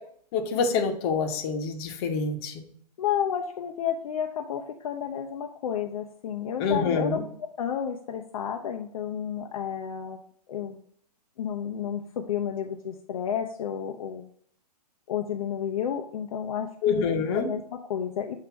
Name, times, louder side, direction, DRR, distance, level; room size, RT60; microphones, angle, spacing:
voice 1, 0.3-2.5 6.6-7.2 16.8-17.5, left 5 dB, 40° left, 5 dB, 1.1 m, -26 dB
voice 2, 3.0-7.2 7.6-10.2 10.5-10.8 11.4-14.2 15.1-18.4, left 8 dB, 55° left, 2 dB, 0.7 m, -31 dB
7.9 x 2.9 x 4.5 m, 0.63 s
hypercardioid pair, 135°, 21 cm